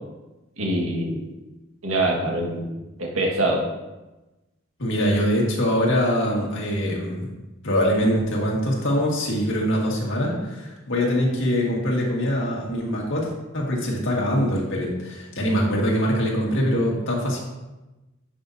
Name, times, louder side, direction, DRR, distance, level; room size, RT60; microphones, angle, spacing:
voice 1, 0.6-1.2 1.8-2.7 3.0-3.7, right 1 dB, 85° right, -1 dB, 1.8 m, -24 dB
voice 2, 4.8-7.3 7.6-17.4, equal, 65° left, -2 dB, 1.9 m, -23 dB
10.5 x 5.9 x 2.8 m, 1.1 s
head